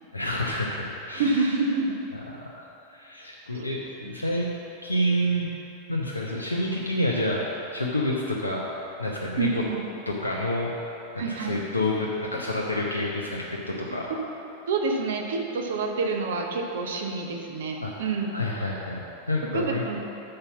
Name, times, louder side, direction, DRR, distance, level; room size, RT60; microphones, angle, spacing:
voice 1, 0.1-1.6 2.4-4.6 4.8-5.5 5.9-7.4 7.7-8.6 9.0-9.6 10.1-10.7 11.1-14.1 17.8-19.8, left 1 dB, 80° left, -3 dB, 0.8 m, -28 dB
voice 2, 1.1-2.0 3.5-3.7 4.0-4.1 9.4-9.8 11.2-11.6 14.7-18.3 19.5-20.0, right 4 dB, 60° right, 2 dB, 0.9 m, -27 dB
6.6 x 5.5 x 7.1 m, 2.8 s
figure-of-eight pair, 90°, 0 cm